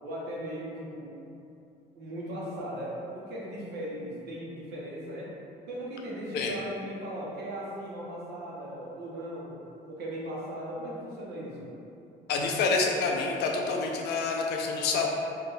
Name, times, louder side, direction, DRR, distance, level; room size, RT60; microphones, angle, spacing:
voice 1, 0.0-1.1 1.9-5.3 5.7-9.6 9.9-11.7, equal, 75° right, -5 dB, 1.0 m, -38 dB
voice 2, 12.3-15.1, left 4 dB, 75° left, 1 dB, 0.6 m, -27 dB
4.4 x 2.6 x 3.3 m, 2.8 s
cardioid pair, 110°, 17 cm